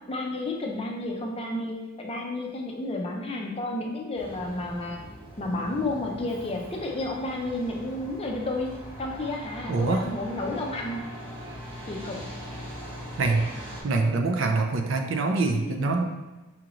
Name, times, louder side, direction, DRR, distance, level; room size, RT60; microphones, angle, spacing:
voice 1, 0.1-5.0 5.4-11.0 11.9-12.3 15.8-15.9, left 2 dB, 25° left, 0 dB, 0.4 m, -31 dB
Truck, 4.2-13.8, equal, 25° right, 0.9 m, -41 dB
voice 2, 9.7-10.1 13.2-16.0, right 3 dB, 60° right, 4 dB, 0.4 m, -25 dB
5.7 x 2.9 x 2.5 m, 1.2 s
head